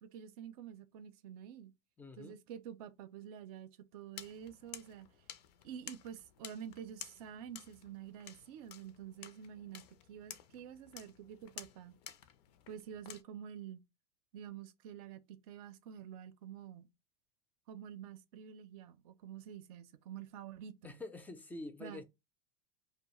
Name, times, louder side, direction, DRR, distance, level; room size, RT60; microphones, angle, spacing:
voice 1, 0.0-1.7 2.2-5.1 5.6-11.9 12.7-13.8 14.3-16.9 17.7-20.9 21.8-22.0, right 9 dB, 65° right, 0.5 m, -48 dB
voice 2, 2.0-2.4 20.8-22.0, left 2 dB, 10° left, 0.3 m, -46 dB
sound 1, 4.1-13.2, left 10 dB, 80° left, 0.5 m, -53 dB
2.3 x 2.1 x 2.9 m
supercardioid pair, 125°, 20 cm